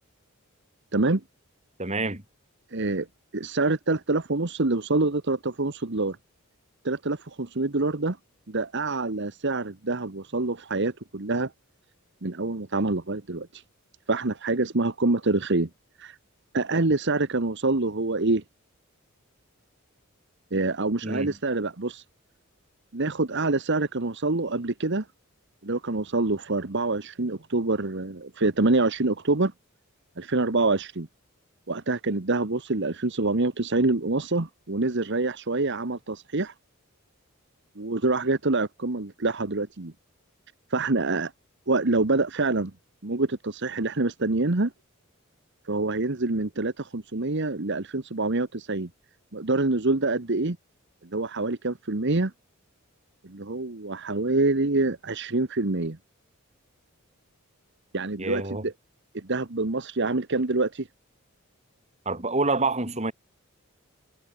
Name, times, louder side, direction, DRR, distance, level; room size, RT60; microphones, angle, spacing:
voice 1, 1.8-2.2 21.0-21.3 58.2-58.6 62.0-63.1, right 3 dB, 30° right, 4.5 m, -27 dB
voice 2, 2.7-3.1 3.3-6.2 6.8-8.2 8.5-11.5 12.2-13.6 14.1-15.7 16.0-16.2 16.5-18.4 20.5-22.0 22.9-25.0 25.6-29.5 30.2-31.1 31.7-36.5 37.8-39.9 40.7-41.3 41.7-42.7 43.0-44.7 45.6-48.9 49.3-50.6 51.1-52.3 53.2-56.0 57.9-58.7 59.1-60.9, right 2 dB, 55° right, 1.3 m, -26 dB
head